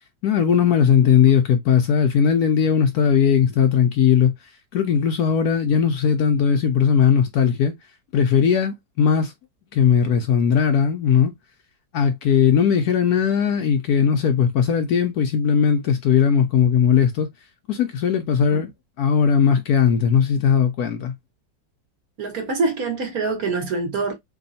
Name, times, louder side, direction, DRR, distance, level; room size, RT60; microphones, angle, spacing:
voice 1, 0.2-4.3 4.7-7.7 8.1-9.3 9.7-11.3 11.9-17.3 17.7-18.7 19.0-21.1, left 7 dB, 70° left, 1.0 m, -18 dB
voice 2, 22.2-24.1, right 3 dB, 55° right, 1.6 m, -25 dB
3.5 x 2.2 x 4.0 m
omnidirectional pair, 2.0 m